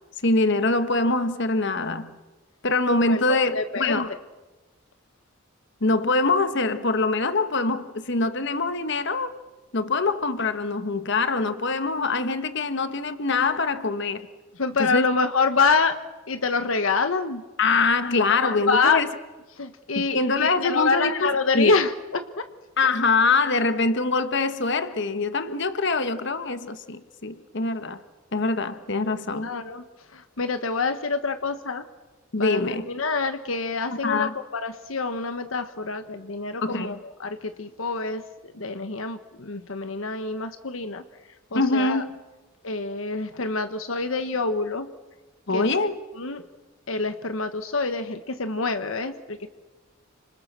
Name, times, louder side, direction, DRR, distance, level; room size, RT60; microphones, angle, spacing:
voice 1, 0.2-2.2 2.6-4.1 5.8-9.3 9.7-14.3 14.8-15.1 17.6-19.1 19.9-21.7 22.8-28.0 28.3-29.5 32.3-32.9 34.0-34.3 36.6-37.0 41.5-42.1 45.5-46.0, left 3 dB, 60° left, 10 dB, 1.4 m, -24 dB
voice 2, 3.1-4.1 14.6-16.0 16.3-17.4 18.3-19.0 19.6-22.5 29.4-29.8 30.1-31.8 32.4-38.3 38.5-41.0 41.5-42.0 42.6-44.9 45.5-45.9 46.2-46.4 46.9-49.5, left 4 dB, 75° left, 9 dB, 1.3 m, -26 dB
29.5 x 26.5 x 6.7 m, 1.2 s
head